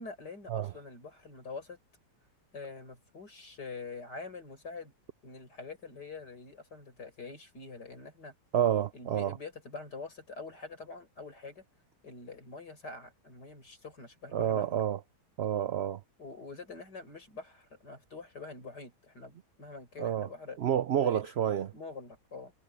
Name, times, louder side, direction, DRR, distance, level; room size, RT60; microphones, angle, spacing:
voice 1, 0.0-1.8 2.5-4.9 5.2-8.3 8.9-11.6 12.0-14.8 16.2-20.6 21.0-21.2 21.7-22.5, left 4 dB, 85° left, 6.5 m, -45 dB
voice 2, 8.5-9.4 14.3-15.0 15.4-16.0 20.0-20.3 20.6-21.7, right 10 dB, 80° right, 0.5 m, -29 dB
omnidirectional pair, 1.7 m